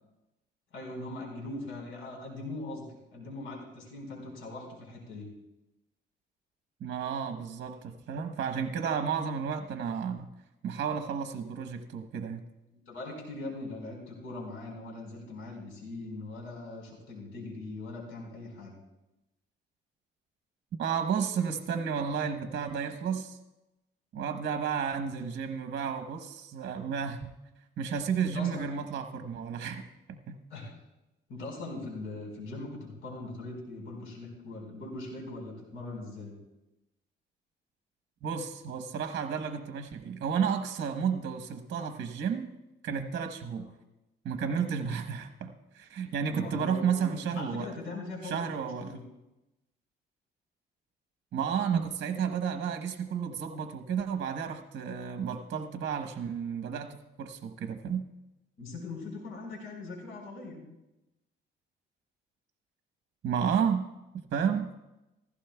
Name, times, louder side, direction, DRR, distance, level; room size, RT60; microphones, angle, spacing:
voice 1, 0.7-2.9 3.1-5.3 12.7-18.8 28.3-28.7 30.5-30.7 31.3-36.4 43.6-43.7 46.3-47.1 47.3-49.0 58.6-60.6, left 2 dB, 75° left, 0 dB, 4.6 m, -41 dB
voice 2, 6.8-10.3 10.6-12.4 20.8-23.4 24.1-27.3 27.8-29.8 30.1-30.4 38.2-42.5 42.8-43.7 44.2-47.7 48.2-49.0 51.3-58.1 63.2-63.9 64.3-64.7, right 7 dB, 60° right, 7 dB, 1.0 m, -32 dB
15.5 x 15.0 x 2.3 m, 0.96 s
cardioid pair, 90°, 20 cm